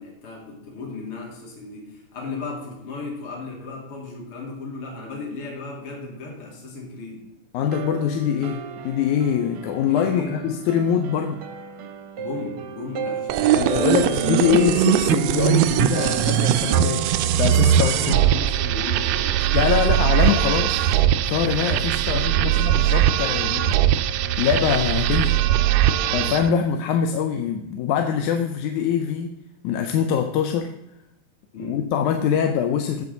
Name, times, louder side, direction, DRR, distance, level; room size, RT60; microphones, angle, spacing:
voice 1, 0.0-7.3 9.9-10.5 12.2-14.2 18.0-20.1 22.1-22.7 31.5-31.8, left 3 dB, 45° left, -1 dB, 2.8 m, -35 dB
voice 2, 7.5-11.4 13.5-17.1 17.4-18.2 19.5-24.0 24.4-25.4 26.1-29.3 29.6-30.7 31.6-33.1, left 8 dB, 80° left, 6 dB, 2.0 m, -23 dB
sound 1, 7.6-18.5, right 7 dB, 70° right, 1.3 m, -35 dB
sound 2, 13.3-26.5, right 11 dB, 85° right, 1.4 m, -20 dB
16.0 x 5.7 x 3.9 m, 0.87 s
omnidirectional pair, 3.5 m